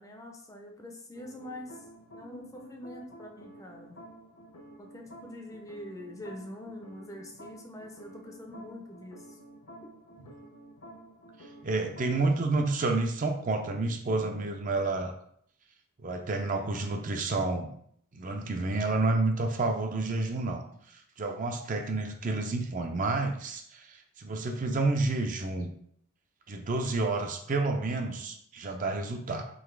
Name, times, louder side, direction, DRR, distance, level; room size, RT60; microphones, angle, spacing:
voice 1, 0.0-1.8 2.1-4.0 4.8-9.4 9.8-9.9, left 1 dB, 15° left, 2 dB, 0.5 m, -44 dB
sound 1, 1.1-12.2, right 1 dB, 80° left, 1.1 m, -50 dB
voice 2, 11.6-15.1 16.0-17.7 18.1-20.6 20.9-25.7 26.5-29.4, right 3 dB, 35° right, 4 dB, 0.4 m, -29 dB
3.9 x 3.0 x 4.5 m, 0.67 s
head